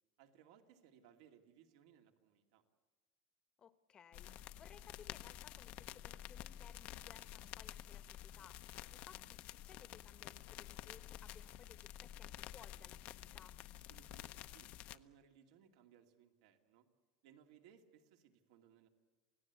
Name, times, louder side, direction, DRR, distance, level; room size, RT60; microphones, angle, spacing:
voice 1, 0.2-2.6 13.7-16.9 17.2-18.9, right 9 dB, 75° right, 4 dB, 2.6 m, -65 dB
voice 2, 3.6-8.6 8.9-13.6, left 7 dB, 25° left, 12 dB, 1.1 m, -62 dB
sound 1, 4.1-15.0, left 12 dB, 45° left, 0.8 m, -51 dB
27.5 x 17.5 x 8.3 m, 1.3 s
supercardioid pair, 155°, 3 cm